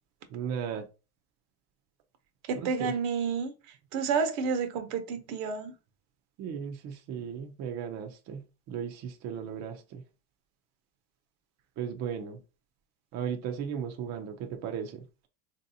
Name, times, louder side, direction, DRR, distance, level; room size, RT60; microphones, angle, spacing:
voice 1, 0.3-0.9 2.5-2.9 6.4-10.0 11.8-12.4 13.1-15.0, right 7 dB, 40° right, 0.5 m, -36 dB
voice 2, 2.5-5.7, right 5 dB, 65° right, 0.8 m, -30 dB
3.2 x 2.7 x 2.6 m
supercardioid pair, 120°, 44 cm